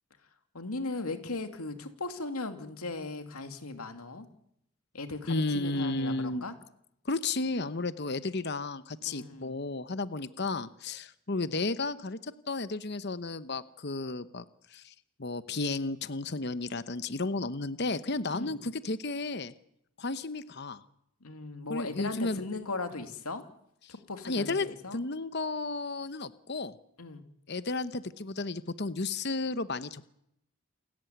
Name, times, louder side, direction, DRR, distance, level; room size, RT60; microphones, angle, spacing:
voice 1, 0.5-4.3 4.9-6.6 9.1-9.5 18.3-18.6 21.2-23.4 23.9-25.0 27.0-27.2, left 3 dB, 90° left, 7 dB, 2.8 m, -38 dB
voice 2, 5.3-6.5 7.0-14.4 14.7-14.9 15.2-19.5 20.0-20.8 21.7-22.4 23.9-24.0 24.2-26.7 27.5-30.1, left 3 dB, 50° left, 13 dB, 0.9 m, -33 dB
29.0 x 14.0 x 9.4 m, 0.76 s
head